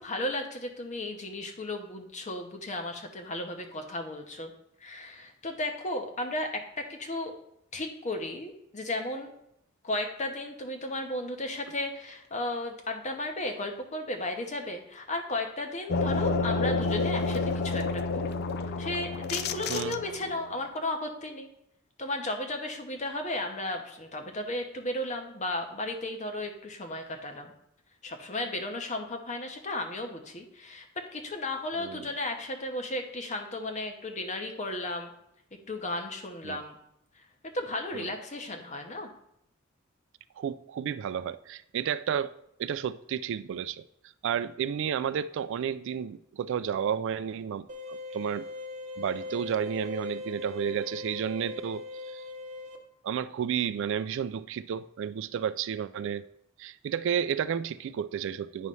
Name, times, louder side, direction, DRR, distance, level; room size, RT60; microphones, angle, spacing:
voice 1, 0.0-4.5 4.8-7.3 7.7-9.3 9.8-18.4 18.8-21.5 22.0-27.5 28.0-30.9 31.1-35.1 35.7-36.8 37.5-39.1, left 1 dB, 35° left, 1.0 m, -34 dB
sound 1, 15.9-20.4, left 3 dB, 50° left, 0.4 m, -29 dB
voice 2, 19.7-20.0 31.8-32.1 36.4-36.6 37.9-38.1 40.4-42.3 42.6-43.8 44.2-48.4 49.0-52.2 53.0-56.3 56.6-58.7, right 8 dB, 65° right, 0.3 m, -32 dB
sound 2, 47.7-52.8, left 3 dB, 40° right, 1.0 m, -39 dB
9.2 x 3.2 x 5.4 m
head